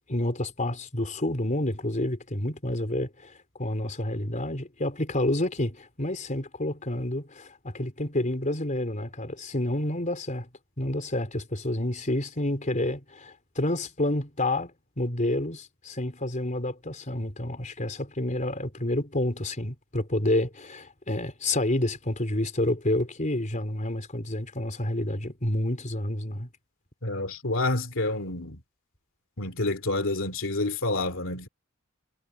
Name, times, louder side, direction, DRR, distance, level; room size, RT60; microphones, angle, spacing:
voice 1, 0.1-3.3 3.6-10.5 10.8-14.7 15.0-26.5, left 1 dB, 35° left, 4.0 m, -29 dB
voice 2, 27.0-28.6 29.4-31.5, left 2 dB, 65° left, 3.0 m, -28 dB
head